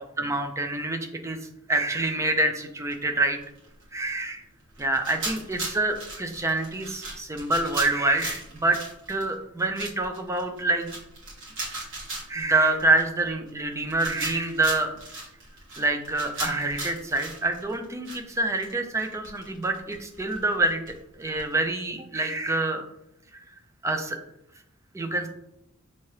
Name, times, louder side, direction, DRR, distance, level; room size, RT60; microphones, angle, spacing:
voice 1, 0.2-1.4 1.7-3.4 3.9-4.4 4.8-8.8 9.1-10.9 12.3-14.9 15.8-22.8 23.8-24.2 24.9-25.3, right 2 dB, 15° right, 6 dB, 0.4 m, -26 dB
sound 1, 2.9-3.0 3.4-4.1 4.8-18.7 19.0-21.5, right 2 dB, 60° right, 1.4 m, -37 dB
5.7 x 2.8 x 3.1 m, 0.83 s
head